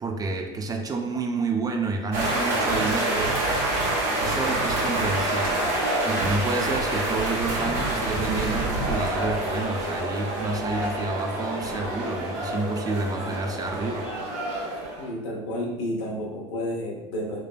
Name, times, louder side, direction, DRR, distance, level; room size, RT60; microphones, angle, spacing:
voice 1, 0.0-3.4 4.2-5.8 6.0-14.1, right 3 dB, 25° right, 3 dB, 0.4 m, -29 dB
sound 1, 2.1-15.1, right 2 dB, 70° right, 1.1 m, -27 dB
voice 2, 15.0-17.4, left 1 dB, 80° left, -1 dB, 0.8 m, -31 dB
3.3 x 2.0 x 2.3 m, 1.1 s
hypercardioid pair, 80°, 15 cm